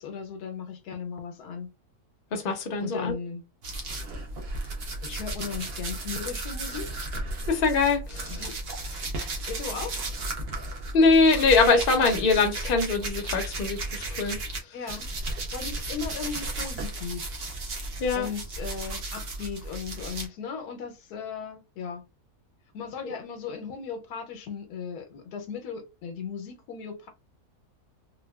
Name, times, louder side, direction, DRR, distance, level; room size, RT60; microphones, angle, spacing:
voice 1, 0.0-1.7 2.8-3.4 5.0-6.9 8.3-8.6 9.5-10.0 14.7-15.1 15.5-17.3 18.1-22.0 22.7-27.1, left 6 dB, 85° left, 1.2 m, -37 dB
voice 2, 2.3-3.1 7.5-8.3 10.9-14.4 18.0-18.3 23.0-23.2, left 4 dB, 45° left, 0.7 m, -23 dB
sound 1, 3.6-14.6 14.9-20.3, right 2 dB, 55° right, 0.7 m, -34 dB
3.3 x 2.2 x 2.3 m
omnidirectional pair, 1.6 m